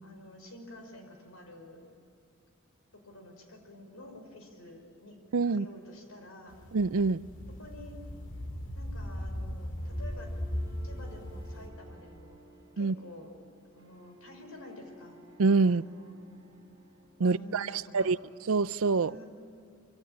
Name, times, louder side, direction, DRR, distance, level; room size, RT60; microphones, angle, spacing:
voice 1, 0.0-1.8 2.9-6.6 7.6-8.0 8.8-10.3 10.8-12.4 12.8-13.3 13.7-15.2 15.7-16.4 17.2-18.1 19.0-19.3, left 1 dB, 80° left, 5.6 m, -49 dB
voice 2, 5.3-5.7 6.7-7.2 12.8-12.9 15.4-15.8 17.2-18.2 18.5-19.1, right 4 dB, 75° right, 0.5 m, -26 dB
sound 1, 6.5-11.7, equal, 60° left, 3.2 m, -38 dB
sound 2, 9.8-17.8, left 1 dB, 20° right, 5.2 m, -56 dB
25.0 x 24.5 x 8.9 m
head